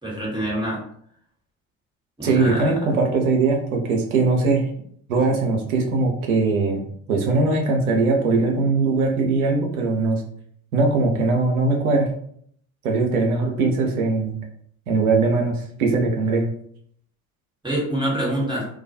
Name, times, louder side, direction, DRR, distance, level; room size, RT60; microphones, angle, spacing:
voice 1, 0.0-0.8 2.2-2.7 17.6-18.7, right 1 dB, 10° right, -4 dB, 1.1 m, -25 dB
voice 2, 2.2-4.7 5.1-6.8 7.1-10.2 10.7-12.1 12.8-14.3 14.9-16.5, right 3 dB, 85° right, 1 dB, 0.6 m, -20 dB
2.3 x 2.2 x 2.6 m, 0.64 s
figure-of-eight pair, 60°, 42 cm